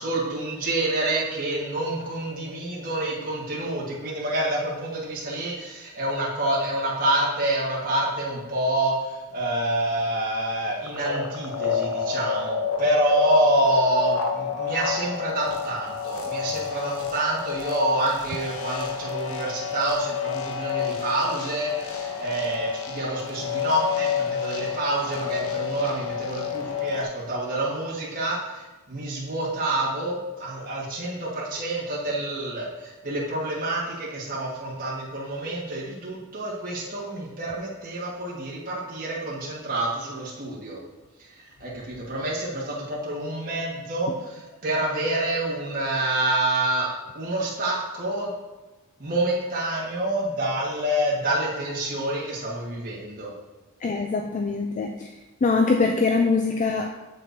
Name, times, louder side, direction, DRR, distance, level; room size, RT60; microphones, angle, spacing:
voice 1, 0.0-40.8 41.3-48.3 49.0-53.3, right 1 dB, 40° right, -6 dB, 1.6 m, -27 dB
sound 1, 10.8-27.0, left 7 dB, 65° left, 0.7 m, -30 dB
voice 2, 53.8-55.1 55.4-56.9, left 4 dB, 35° left, 3 dB, 0.4 m, -23 dB
7.7 x 7.3 x 2.7 m, 1.1 s
head